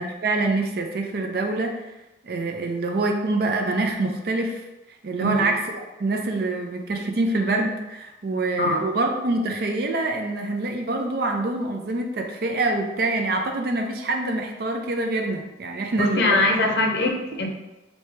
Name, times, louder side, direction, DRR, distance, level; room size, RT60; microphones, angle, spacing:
voice 1, 0.0-1.8 2.2-4.6 5.0-5.6 6.0-16.7, right 2 dB, 60° right, 3 dB, 0.5 m, -25 dB
voice 2, 8.6-8.9 16.0-17.5, left 2 dB, 65° left, 2 dB, 0.6 m, -22 dB
3.1 x 2.8 x 3.2 m, 1.0 s
head